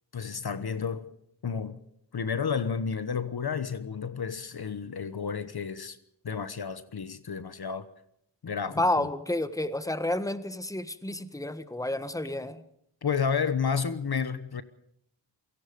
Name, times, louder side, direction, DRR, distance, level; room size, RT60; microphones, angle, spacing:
voice 1, 0.1-1.1 1.4-1.8 2.1-6.0 6.2-7.9 8.4-9.1 13.0-14.6, left 6 dB, 55° left, 1.2 m, -31 dB
voice 2, 8.7-12.6, left 1 dB, 5° left, 1.5 m, -30 dB
27.5 x 17.5 x 5.3 m
cardioid pair, 60°, 46 cm